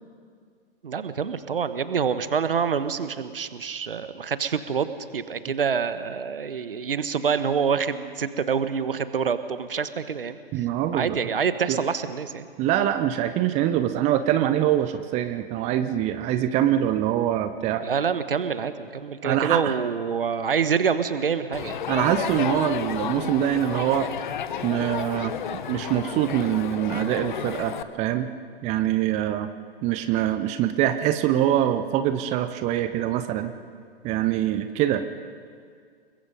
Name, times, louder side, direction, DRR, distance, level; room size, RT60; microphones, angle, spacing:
voice 1, 0.8-4.9 5.1-10.7 10.9-12.5 17.8-21.8, right 6 dB, 65° right, 12 dB, 1.3 m, -26 dB
voice 2, 10.5-11.2 11.7-11.8 12.6-18.0 19.2-19.8 21.9-24.1 24.6-25.3 25.7-28.3 28.6-29.5 29.8-33.5 34.0-35.0, right 11 dB, 20° right, 10 dB, 0.8 m, -24 dB
Crowd, 21.5-27.8, left 8 dB, 50° left, 1.1 m, -32 dB
30.0 x 21.0 x 5.3 m, 2.1 s
figure-of-eight pair, 110°, 30 cm